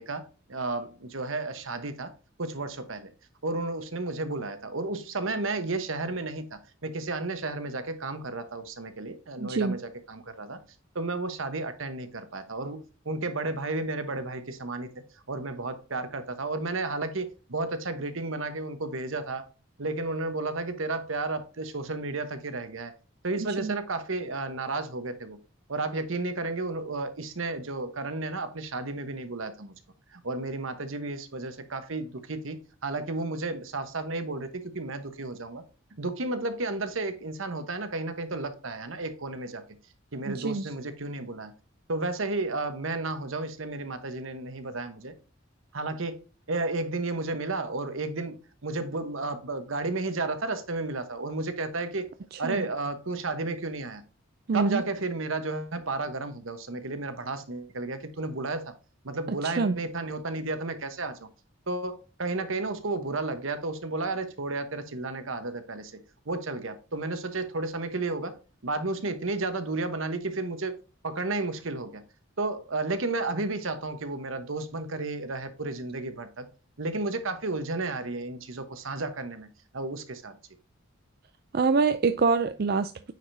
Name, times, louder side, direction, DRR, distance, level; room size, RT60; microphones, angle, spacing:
voice 1, 0.0-2.1 2.4-3.1 3.4-10.6 10.9-12.8 13.0-19.5 19.8-22.9 23.2-25.4 25.7-29.7 30.1-35.6 36.0-39.6 40.1-41.5 41.9-45.1 45.7-46.2 46.5-48.4 48.6-52.1 52.4-54.0 54.5-58.7 59.0-61.3 61.7-66.0 66.3-68.3 68.6-70.7 71.0-72.0 72.4-76.5 76.8-79.5 79.7-80.4, right 3 dB, 75° right, 1.1 m, -32 dB
voice 2, 9.4-9.8 23.6-23.8 40.3-40.7 52.4-52.7 54.5-54.8 59.4-59.8 81.5-83.1, right 4 dB, 50° right, 0.4 m, -25 dB
9.4 x 5.1 x 2.7 m
head